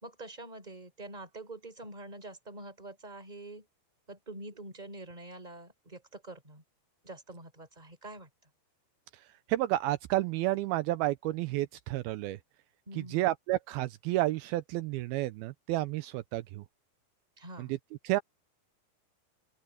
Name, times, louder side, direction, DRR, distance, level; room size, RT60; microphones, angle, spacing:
voice 1, 0.0-3.7 4.1-6.6 7.0-8.3 12.8-13.3 17.4-17.7, right 2 dB, 10° right, 3.3 m, -46 dB
voice 2, 9.5-12.4 13.0-16.6 17.6-17.7 18.0-18.2, right 16 dB, 90° right, 2.2 m, -31 dB
open air
omnidirectional pair, 5.1 m